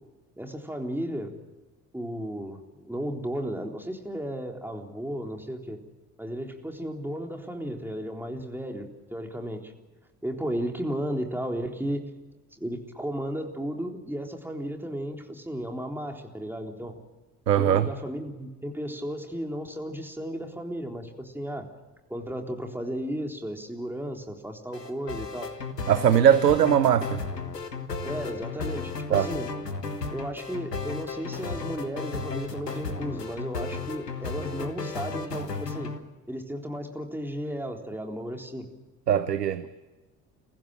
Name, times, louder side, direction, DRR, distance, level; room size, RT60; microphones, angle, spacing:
voice 1, 0.4-1.3 1.9-5.8 6.2-9.7 10.2-12.1 12.6-17.0 17.6-21.7 22.1-25.5 28.0-29.5 30.1-35.9 36.3-38.7, equal, 5° right, 3.7 m, -34 dB
voice 2, 17.5-17.9 25.9-27.2 29.1-29.3 39.1-39.6, right 9 dB, 85° right, 0.8 m, -20 dB
sound 1, 24.7-36.0, left 4 dB, 85° left, 1.5 m, -34 dB
30.0 x 15.0 x 9.0 m
figure-of-eight pair, 55°, 47 cm